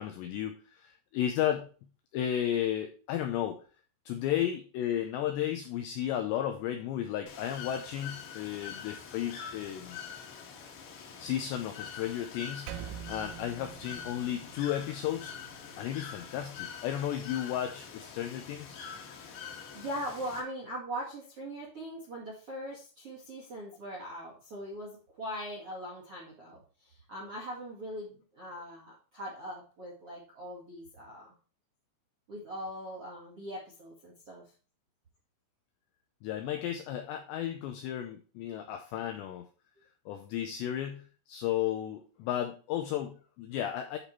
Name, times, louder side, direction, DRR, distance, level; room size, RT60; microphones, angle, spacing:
voice 1, 0.0-1.7 2.1-3.6 4.1-10.0 11.2-12.8 13.1-15.3 15.8-18.8 36.2-39.5 40.1-44.0, left 11 dB, 85° left, 6 dB, 2.5 m, -33 dB
Bird / Water, 7.3-20.4, left 7 dB, 65° left, 3.2 m, -45 dB
Percussion, 12.7-17.5, right 10 dB, 90° right, 3.3 m, -47 dB
voice 2, 19.4-31.3 32.3-34.5, equal, 55° right, -1 dB, 1.5 m, -41 dB
11.0 x 4.3 x 4.5 m, 0.37 s
omnidirectional pair, 5.9 m